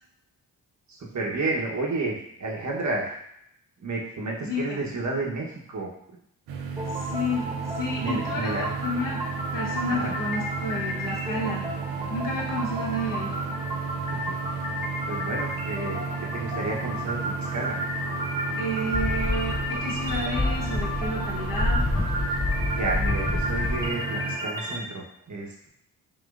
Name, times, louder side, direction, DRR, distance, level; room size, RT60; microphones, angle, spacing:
voice 1, 0.9-3.2 3.8-5.9 7.9-8.7 9.9-10.1 14.1-14.4 15.0-16.0 16.3-17.9 22.8-25.7, right 3 dB, 50° right, -1 dB, 1.1 m, -31 dB
voice 2, 4.4-4.9 6.9-8.5 8.8-9.2 9.5-11.8 12.1-13.4 18.6-21.8, left 1 dB, 60° left, -3 dB, 1.3 m, -31 dB
sound 1, 6.5-24.4, right 6 dB, 85° right, 0.6 m, -34 dB
sound 2, 6.8-24.8, equal, 10° right, 1.5 m, -33 dB
sound 3, 18.9-23.9, left 2 dB, 15° left, 0.4 m, -28 dB
5.2 x 3.0 x 2.5 m, 0.73 s
cardioid pair, 60°, 37 cm